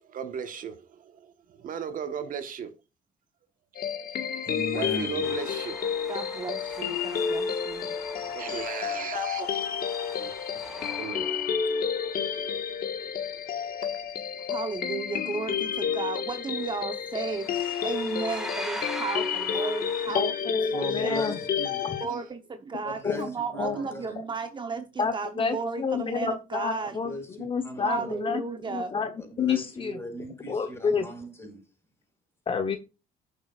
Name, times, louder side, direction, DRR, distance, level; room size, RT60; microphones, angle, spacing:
voice 1, 0.1-0.8 1.6-2.7 4.7-5.8 8.3-9.6 10.2-10.3 11.0-11.3, right 7 dB, 55° right, 1.4 m, -35 dB
sound 1, 3.7-22.1, left 7 dB, 60° left, 1.7 m, -30 dB
voice 2, 4.4-5.6 20.0-20.3 20.7-21.9 22.8-24.2 26.8-28.3 29.2-31.6, equal, 15° left, 5.0 m, -39 dB
sound 2, 5.2-12.3 16.6-16.8 17.1-20.1, right 1 dB, 5° right, 2.2 m, -42 dB
voice 3, 6.1-7.9 10.5-10.6 14.5-20.3 20.9-21.2 22.0-27.0 27.8-28.9, right 5 dB, 30° right, 0.9 m, -34 dB
voice 4, 20.1-21.4 23.0-23.8 25.0-29.1 29.4-30.0 30.4-31.1 32.5-32.8, left 6 dB, 30° left, 1.1 m, -29 dB
15.0 x 6.6 x 2.5 m
cardioid pair, 110°, 17 cm